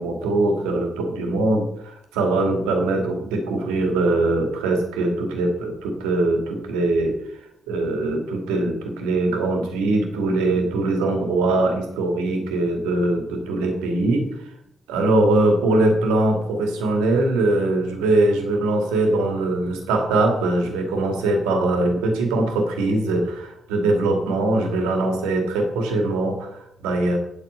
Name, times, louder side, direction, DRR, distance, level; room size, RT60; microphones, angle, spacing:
voice 1, 0.0-7.2 7.7-14.3 14.9-27.2, right 2 dB, 85° right, 3 dB, 2.2 m, -22 dB
10.0 x 7.9 x 5.5 m, 0.78 s
hypercardioid pair, 40°, 0 cm